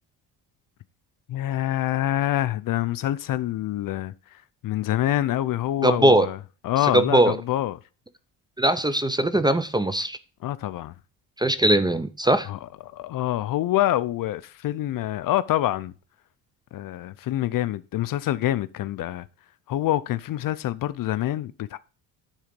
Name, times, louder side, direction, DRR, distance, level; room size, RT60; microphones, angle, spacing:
voice 1, 1.3-7.8 10.4-10.9 12.5-15.9 16.7-19.3 19.7-21.8, left 13 dB, 55° left, 0.5 m, -26 dB
voice 2, 5.8-6.3 6.9-7.4 8.6-10.2 11.4-12.5, right 1 dB, 10° right, 0.5 m, -20 dB
10.0 x 3.8 x 5.1 m
cardioid pair, 115°, 42 cm